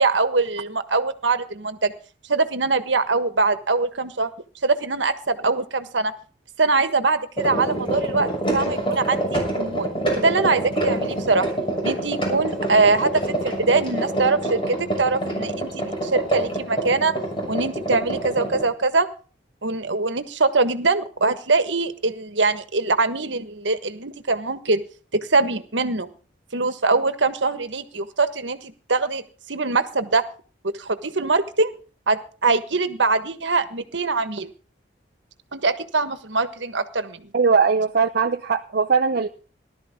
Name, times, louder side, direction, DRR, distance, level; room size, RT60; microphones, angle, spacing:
voice 1, 0.0-1.9 2.3-4.3 4.6-6.1 6.6-9.9 10.1-11.5 11.8-17.1 17.5-19.1 19.6-24.8 25.1-26.1 26.5-29.2 29.5-30.2 30.8-31.7 32.1-34.5 35.5-37.3, right 3 dB, 75° right, 11 dB, 1.5 m, -23 dB
sound 1, 7.4-18.6, right 1 dB, 30° left, 6.4 m, -26 dB
voice 2, 37.3-39.3, right 5 dB, 60° right, 4 dB, 0.7 m, -20 dB
18.5 x 12.5 x 3.7 m, 0.38 s
head